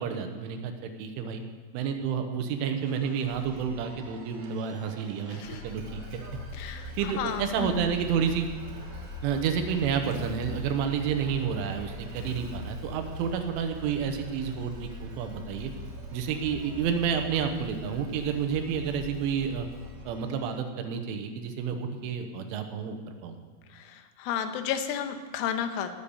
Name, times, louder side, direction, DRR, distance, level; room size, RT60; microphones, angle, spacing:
voice 1, 0.0-1.4 1.7-6.2 7.0-8.5 9.2-15.7 16.1-19.7 20.1-23.4, right 7 dB, 90° right, 6 dB, 3.5 m, -30 dB
sound 1, 2.8-20.6, right 3 dB, 65° right, 2.7 m, -51 dB
Motorcycle / Engine starting, 3.3-4.0 5.3-20.2, left 2 dB, 45° right, 1.9 m, -42 dB
voice 2, 5.3-5.6 6.5-7.9 23.7-25.9, left 8 dB, 85° left, 7 dB, 3.4 m, -33 dB
18.0 x 7.1 x 6.6 m, 1.5 s
omnidirectional pair, 5.6 m